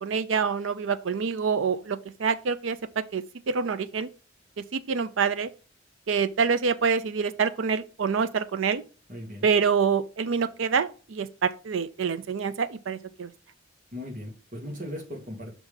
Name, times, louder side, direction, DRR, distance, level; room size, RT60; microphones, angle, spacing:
voice 1, 0.0-4.1 4.6-5.5 6.1-8.8 9.4-13.3, right 6 dB, 70° right, 0.5 m, -26 dB
voice 2, 9.1-9.5 13.9-15.5, left 1 dB, 40° right, 2.2 m, -38 dB
6.0 x 3.4 x 5.6 m
head